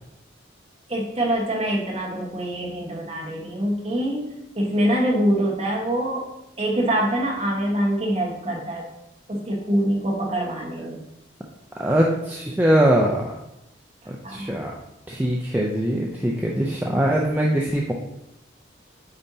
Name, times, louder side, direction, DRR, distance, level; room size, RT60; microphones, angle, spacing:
voice 1, 0.9-6.3 6.6-8.9 9.3-11.0 14.2-14.6, right 1 dB, 30° right, -2 dB, 1.3 m, -24 dB
voice 2, 11.8-13.3 14.1-14.7 15.1-17.9, right 1 dB, 10° right, -2 dB, 0.4 m, -22 dB
8.8 x 4.3 x 2.7 m, 0.86 s
head